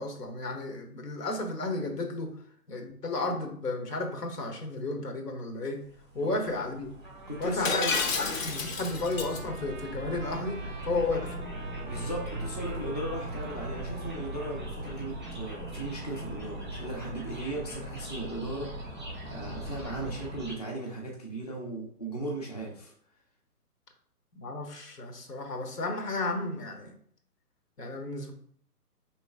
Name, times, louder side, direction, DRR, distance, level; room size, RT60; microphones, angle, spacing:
voice 1, 0.0-2.4 2.7-5.8 6.1-6.9 7.4-7.9 8.2-11.4 24.3-26.9 27.8-28.3, left 2 dB, 90° left, 4 dB, 1.2 m, -33 dB
sound 1, 5.9-20.5, right 1 dB, 5° left, 0.8 m, -39 dB
Trumpet, 7.0-14.7, right 4 dB, 35° right, 0.4 m, -48 dB
voice 2, 7.3-8.0 11.8-18.9 19.3-22.9, right 1 dB, 25° left, -2 dB, 0.4 m, -37 dB
Shatter, 7.7-9.4, left 5 dB, 55° left, 0.7 m, -30 dB
4.6 x 3.0 x 3.4 m, 0.63 s
hypercardioid pair, 155°, 46 cm